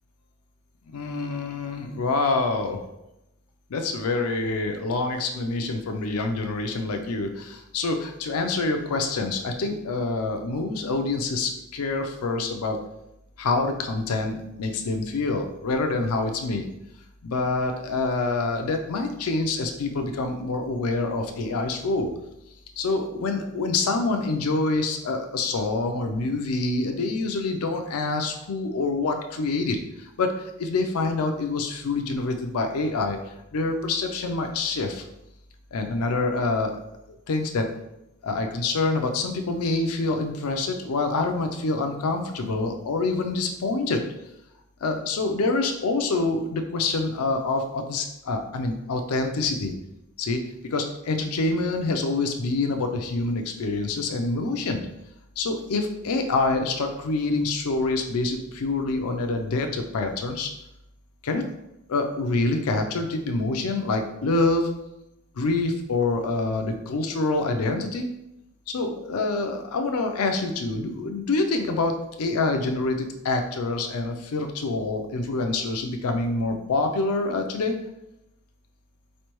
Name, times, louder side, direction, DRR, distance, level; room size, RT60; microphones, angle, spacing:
voice 1, 0.9-2.8 3.7-12.8 13.4-16.6 17.2-22.1 22.8-33.2 33.5-35.0 35.7-36.8 37.1-37.7 38.2-44.0 44.8-49.7 50.2-50.4 50.7-54.9 55.4-60.5 61.2-61.4 61.9-64.7 65.4-68.1 68.7-77.8, left 3 dB, 85° left, 5 dB, 0.5 m, -26 dB
4.3 x 3.2 x 3.0 m, 0.87 s
head